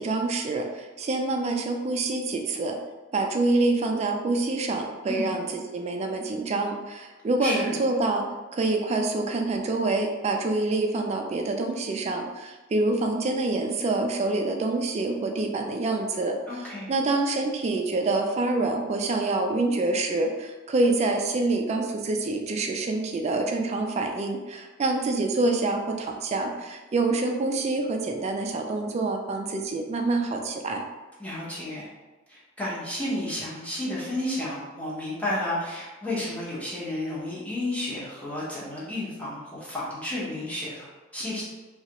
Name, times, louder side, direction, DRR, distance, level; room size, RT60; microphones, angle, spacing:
voice 1, 0.0-2.8 3.1-8.3 8.5-16.3 16.9-30.8, right 2 dB, 35° right, 3 dB, 0.3 m, -26 dB
voice 2, 7.4-7.7 16.5-16.9 31.2-31.9 32.3-41.4, left 1 dB, 5° left, -8 dB, 0.9 m, -32 dB
3.1 x 2.3 x 2.9 m, 1.2 s
head